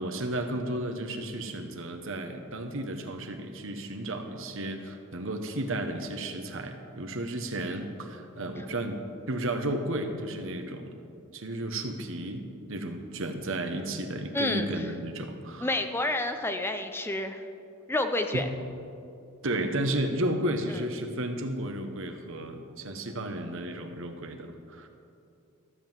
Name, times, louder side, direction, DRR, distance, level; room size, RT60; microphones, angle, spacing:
voice 1, 0.0-9.0 9.3-10.9 11.3-12.4 12.7-15.7 18.3-18.5 19.4-24.9, right 1 dB, 65° right, 6 dB, 1.2 m, -33 dB
voice 2, 14.3-14.7 15.6-17.4 17.9-18.5 20.7-20.8, left 2 dB, 10° left, 7 dB, 0.5 m, -29 dB
13.5 x 7.8 x 7.3 m, 2.6 s
head